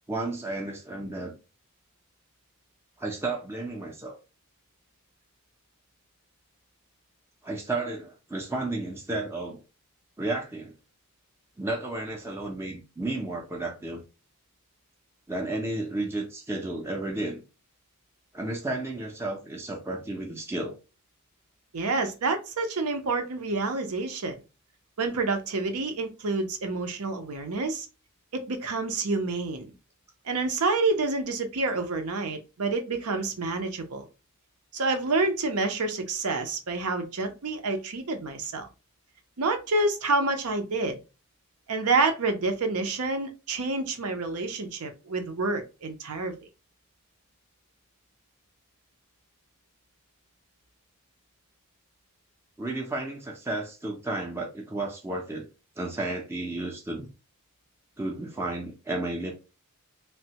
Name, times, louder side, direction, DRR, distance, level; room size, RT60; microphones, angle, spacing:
voice 1, 0.1-1.4 3.0-4.2 7.4-9.6 10.2-10.7 11.6-14.0 15.3-17.4 18.3-20.8 52.6-55.5 55.8-57.1 58.0-59.3, right 2 dB, 10° right, 0.4 m, -32 dB
voice 2, 21.7-24.4 25.0-27.9 28.3-29.7 30.2-34.1 34.7-38.7 39.4-41.0 41.7-46.4, right 3 dB, 85° right, 0.7 m, -28 dB
3.2 x 2.1 x 2.8 m
head